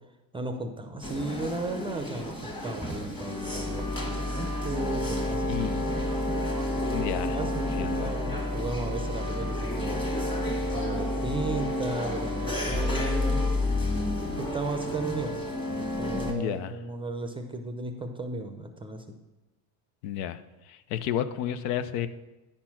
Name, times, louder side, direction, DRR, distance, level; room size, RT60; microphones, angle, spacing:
voice 1, 0.3-5.9 6.8-10.0 10.7-13.4 14.3-15.4 15.7-19.0, right 2 dB, 10° right, 6 dB, 0.5 m, -35 dB
sound 1, 1.0-16.3, left 1 dB, 10° left, 1.4 m, -30 dB
voice 2, 5.5-5.9 6.9-7.4 7.8-8.1 16.3-16.8 20.0-20.4 20.7-22.1, left 10 dB, 80° left, 12 dB, 0.7 m, -31 dB
10.5 x 4.4 x 5.8 m, 1.1 s
supercardioid pair, 125°, 48 cm